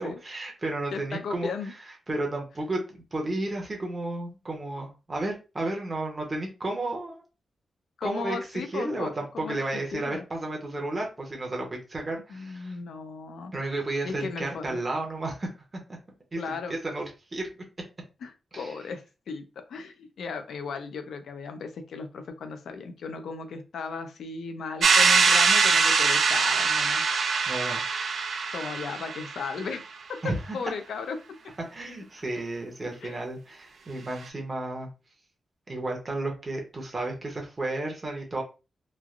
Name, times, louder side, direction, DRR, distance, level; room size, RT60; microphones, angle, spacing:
voice 1, 0.0-7.2 8.0-12.8 13.5-15.5 16.3-17.5 18.5-18.7 27.5-27.8 30.2-30.6 31.7-34.9 35.7-38.4, right 2 dB, 20° right, 0 dB, 0.7 m, -32 dB
voice 2, 0.9-1.7 8.0-9.6 9.9-10.2 12.3-13.5 14.0-14.8 16.4-16.7 18.2-27.0 28.5-29.8 30.1-31.2 33.0-33.2, left 5 dB, 80° left, 7 dB, 0.5 m, -36 dB
sound 1, 24.8-29.6, right 5 dB, 60° right, 0.4 m, -23 dB
3.1 x 2.4 x 2.3 m, 0.30 s
wide cardioid pair, 175°, 0 cm